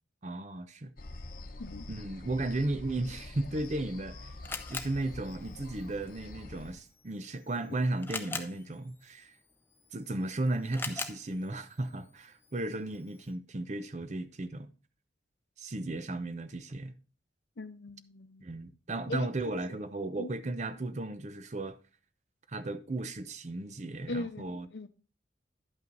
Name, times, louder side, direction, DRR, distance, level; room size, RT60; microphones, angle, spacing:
voice 1, 0.2-0.9 1.9-4.2 4.7-9.3 9.9-14.7 15.6-16.9 18.4-21.7 22.5-24.7, right 2 dB, 40° right, 0.6 m, -35 dB
sound 1, 1.0-6.7, left 2 dB, 50° left, 0.9 m, -46 dB
Camera, 3.5-13.3, left 4 dB, 10° left, 0.5 m, -45 dB
voice 2, 17.6-18.5 19.1-19.8 20.2-20.3 24.1-24.9, left 2 dB, 70° left, 0.7 m, -40 dB
11.0 x 5.7 x 3.9 m
head